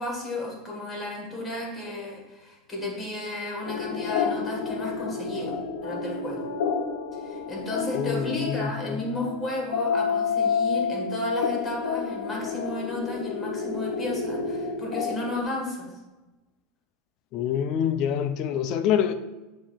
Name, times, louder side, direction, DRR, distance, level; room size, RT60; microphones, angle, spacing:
voice 1, 0.0-6.5 7.1-15.9, left 1 dB, 5° left, 1.5 m, -33 dB
sound 1, 3.6-15.4, left 5 dB, 85° left, 0.8 m, -29 dB
voice 2, 7.9-9.1 17.3-19.1, left 9 dB, 35° left, 0.5 m, -26 dB
8.7 x 2.9 x 5.6 m
supercardioid pair, 175°, 0 cm